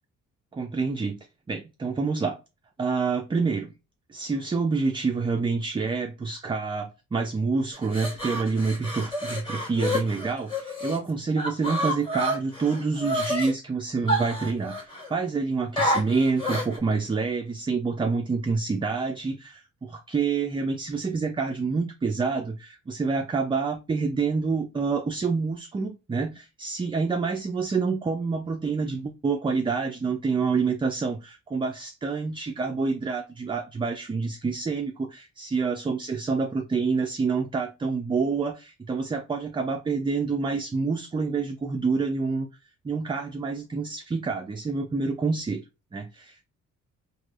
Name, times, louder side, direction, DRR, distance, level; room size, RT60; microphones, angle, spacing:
voice 1, 0.5-1.1 1.5-2.4 2.8-3.7 4.1-42.5 42.8-45.6 45.9-46.4, right 4 dB, 15° right, 0.3 m, -27 dB
sound 1, 7.7-11.0 11.4-13.5 14.1-15.1 15.8-16.8, equal, 15° left, 1.3 m, -29 dB
3.1 x 2.6 x 2.4 m
cardioid pair, 90°, 30 cm